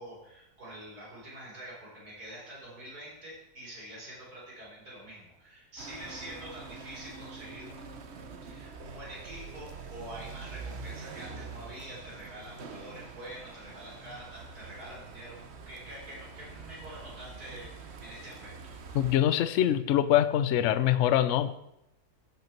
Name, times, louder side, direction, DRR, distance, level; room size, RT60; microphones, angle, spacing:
voice 1, 0.0-8.2 8.4-15.4 15.7-18.8, right 1 dB, 70° right, -6 dB, 4.6 m, -46 dB
sound 1, 5.8-19.2, right 4 dB, 50° right, 1.0 m, -45 dB
voice 2, 18.9-21.6, left 11 dB, 65° left, 13 dB, 0.8 m, -24 dB
14.5 x 5.6 x 4.5 m, 0.83 s
omnidirectional pair, 1.7 m